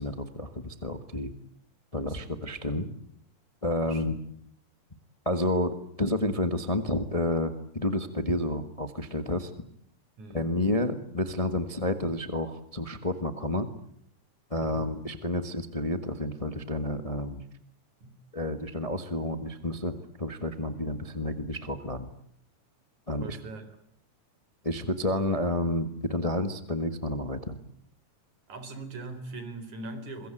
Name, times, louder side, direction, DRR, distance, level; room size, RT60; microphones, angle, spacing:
voice 1, 0.0-1.3 1.9-2.9 3.6-4.1 5.2-9.5 10.3-13.7 14.5-17.4 18.3-22.1 23.1-23.4 24.6-27.6, left 1 dB, 20° left, 10 dB, 1.0 m, -30 dB
voice 2, 2.0-2.4 3.8-4.2 10.2-10.5 14.7-15.0 18.0-18.2 23.2-23.8 28.5-30.3, right 2 dB, 80° right, 10 dB, 5.2 m, -41 dB
25.5 x 22.5 x 9.2 m, 0.66 s
omnidirectional pair, 3.3 m